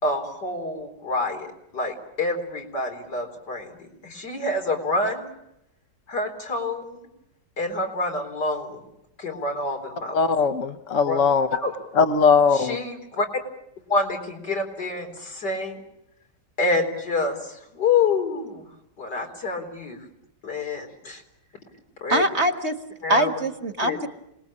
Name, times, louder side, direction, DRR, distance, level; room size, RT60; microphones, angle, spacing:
voice 1, 0.0-5.3 6.1-7.1 7.6-8.8 9.2-10.2 11.0-11.2 11.5-11.7 12.5-13.3 13.9-15.8 16.6-18.7 19.0-20.0 20.4-21.2 22.0-22.2 23.0-23.4 23.8-24.0, left 3 dB, 90° left, 2 dB, 4.7 m, -27 dB
voice 2, 10.1-11.5 11.9-12.8, left 5 dB, 50° left, 8 dB, 1.4 m, -19 dB
voice 3, 22.1-22.8 23.1-24.1, right 1 dB, 40° right, 7 dB, 1.8 m, -22 dB
27.5 x 20.5 x 8.6 m, 0.84 s
omnidirectional pair, 1.8 m